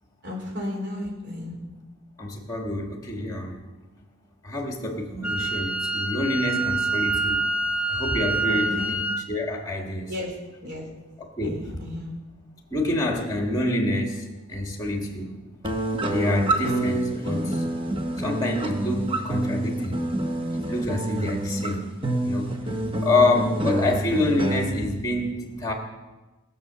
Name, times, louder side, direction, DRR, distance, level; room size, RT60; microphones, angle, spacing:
voice 1, 0.2-1.6 8.5-8.9 10.1-10.3 10.6-10.9 11.4-12.2, left 1 dB, 55° right, 0 dB, 4.0 m, -34 dB
voice 2, 2.2-3.6 4.4-7.4 7.9-9.0 9.3-10.1 11.2-11.6 12.7-15.3 16.1-17.6 18.2-20.0 20.7-21.9 22.2-22.5 23.0-25.7, left 2 dB, 15° left, 1 dB, 1.9 m, -27 dB
Wind instrument woodwind instrument, 5.2-9.2, right 2 dB, 5° right, 0.9 m, -26 dB
sound 1, 15.6-24.6, right 1 dB, 25° right, 1.2 m, -27 dB
20.5 x 7.2 x 6.9 m, 1.2 s
head